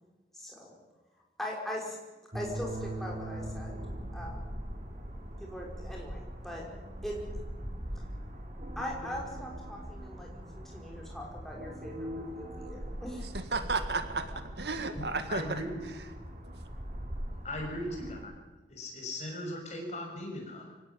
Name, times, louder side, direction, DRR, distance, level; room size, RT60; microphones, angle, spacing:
voice 1, 0.3-0.8 1.4-2.0 2.3-3.8 4.1-4.6 5.4-6.7 7.0-7.2 8.8-13.2, equal, ahead, -2 dB, 5.6 m, -40 dB
sound 1, 2.3-18.3, equal, 40° right, 3.5 m, -41 dB
voice 2, 13.3-15.6, right 3 dB, 75° right, 8 dB, 2.0 m, -33 dB
voice 3, 15.3-15.8 17.4-18.3 18.7-20.7, left 1 dB, 40° left, 1 dB, 6.4 m, -38 dB
24.5 x 17.5 x 9.0 m, 1.2 s
head